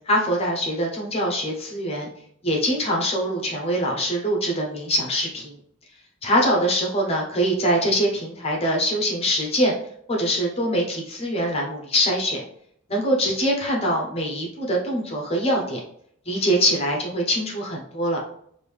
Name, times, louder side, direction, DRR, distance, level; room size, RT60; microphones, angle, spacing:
voice 1, 0.1-2.1 2.4-5.6 6.2-9.7 10.1-12.4 12.9-15.8 16.3-18.2, equal, 30° left, 0 dB, 0.9 m, -23 dB
5.1 x 2.7 x 3.4 m, 0.67 s
head